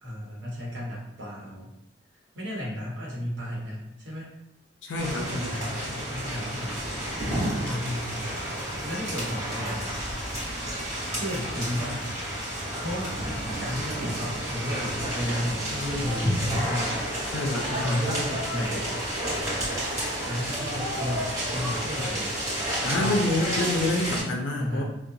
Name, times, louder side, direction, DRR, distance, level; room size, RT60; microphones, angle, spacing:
voice 1, 0.0-1.7 2.3-4.3 5.3-6.8 7.5-8.3 8.8-9.9 11.1-12.1 12.8-13.2 13.6-16.9 17.8-19.0 20.2-22.3 22.7-23.2 24.6-24.8, equal, 85° right, -5 dB, 1.0 m, -33 dB
voice 2, 4.8-5.6 17.3-18.0 22.8-24.8, left 1 dB, 90° left, 1 dB, 0.4 m, -27 dB
sound 1, 5.0-24.2, equal, 20° right, 1.0 m, -30 dB
2.7 x 2.2 x 2.5 m, 0.83 s
head